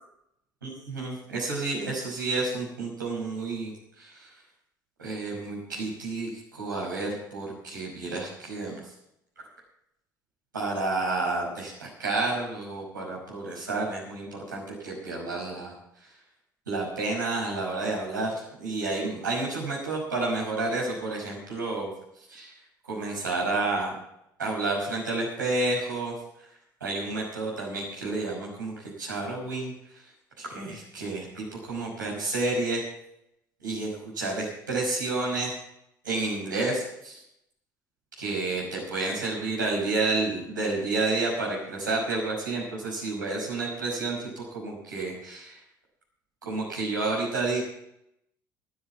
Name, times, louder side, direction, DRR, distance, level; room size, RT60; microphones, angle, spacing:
voice 1, 0.6-3.7 4.0-4.3 5.0-8.8 10.5-15.7 16.0-16.1 16.7-21.9 22.3-22.5 22.9-23.9 24.4-26.1 26.8-30.1 30.4-32.8 33.6-35.6 36.0-37.2 38.2-45.6 46.4-47.6, right 3 dB, 80° right, -3 dB, 5.6 m, -30 dB
13.0 x 9.5 x 7.2 m, 0.80 s
figure-of-eight pair, 60°, 10 cm